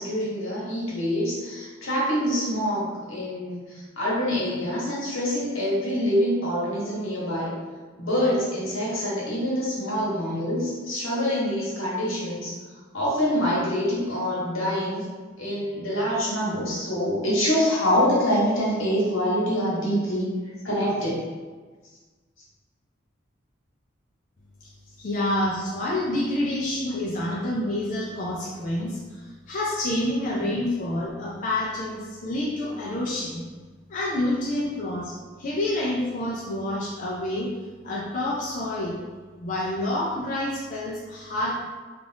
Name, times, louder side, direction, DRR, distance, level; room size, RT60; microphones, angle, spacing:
voice 1, 0.0-7.5 8.0-12.5 12.9-15.0 15.4-20.3 20.6-21.2, equal, 80° left, -6 dB, 1.1 m, -25 dB
voice 2, 25.0-33.4 33.9-37.5 37.8-39.0 39.4-41.5, left 1 dB, 40° left, -5 dB, 0.4 m, -28 dB
2.5 x 2.4 x 3.3 m, 1.4 s
head